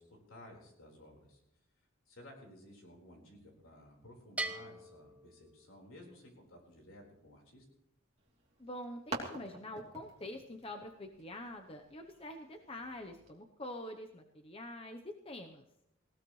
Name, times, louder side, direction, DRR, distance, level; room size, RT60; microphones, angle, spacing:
voice 1, 0.0-1.4 2.1-7.6, left 1 dB, 75° left, 0 dB, 4.5 m, -55 dB
Bell, 4.4-6.1, right 2 dB, 5° right, 0.8 m, -42 dB
sound 1, 8.2-13.3, right 2 dB, 30° right, 3.0 m, -48 dB
voice 2, 8.6-15.6, left 1 dB, 25° left, 5 dB, 0.8 m, -45 dB
19.5 x 17.0 x 3.2 m, 0.83 s
head